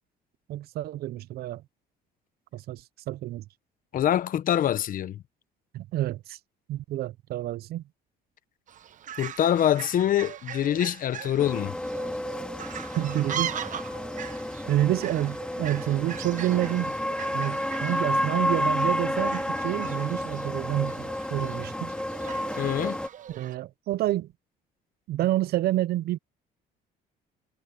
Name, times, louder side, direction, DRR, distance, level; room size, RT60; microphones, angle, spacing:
voice 1, 0.5-1.6 2.5-3.4 5.7-6.4 6.7-7.8 13.0-13.6 14.7-17.0 17.3-21.9 23.3-24.3 25.1-26.2, right 14 dB, 65° right, 0.6 m, -28 dB
voice 2, 3.9-5.2 9.2-11.7 22.6-23.0, left 11 dB, 55° left, 1.1 m, -25 dB
Fowl, 8.7-23.6, right 10 dB, 50° right, 1.0 m, -40 dB
sound 1, 11.4-23.1, left 1 dB, 5° left, 2.4 m, -31 dB
cardioid pair, 110°, 17 cm